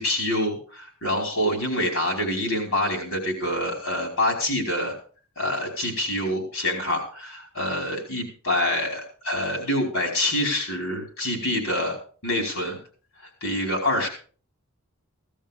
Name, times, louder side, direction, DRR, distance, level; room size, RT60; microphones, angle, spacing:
voice 1, 0.0-4.9 5.4-12.0 12.2-12.8 13.4-14.1, left 1 dB, 70° left, 1 dB, 5.2 m, -26 dB
17.0 x 12.5 x 3.7 m, 0.41 s
head